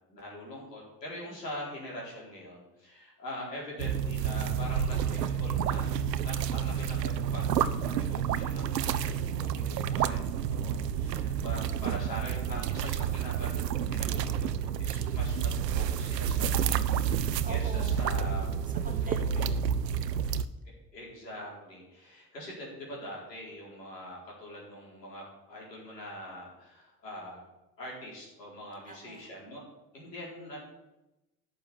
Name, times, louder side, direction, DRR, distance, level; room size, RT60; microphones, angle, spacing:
voice 1, 0.1-14.3 14.6-18.6 19.0-19.5 20.9-27.4 27.8-29.6 29.9-30.6, equal, 85° left, -4 dB, 4.3 m, -43 dB
voice 2, 1.3-1.6 17.4-20.4 28.8-29.3, right 3 dB, 15° right, 4 dB, 2.7 m, -47 dB
sound 1, 3.8-20.4, right 8 dB, 85° right, 0.6 m, -29 dB
11.5 x 6.8 x 8.5 m, 0.98 s
figure-of-eight pair, 60°, 48 cm